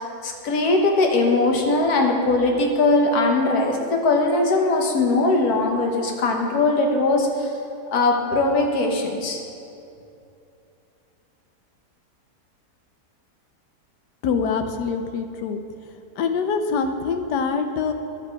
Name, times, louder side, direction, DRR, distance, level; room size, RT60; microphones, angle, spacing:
voice 1, 0.0-7.5 7.9-9.4, left 2 dB, 70° left, 2 dB, 1.6 m, -20 dB
voice 2, 14.2-15.6 16.2-17.9, left 5 dB, 85° left, 7 dB, 1.3 m, -24 dB
11.5 x 7.6 x 4.6 m, 2.6 s
omnidirectional pair, 1.8 m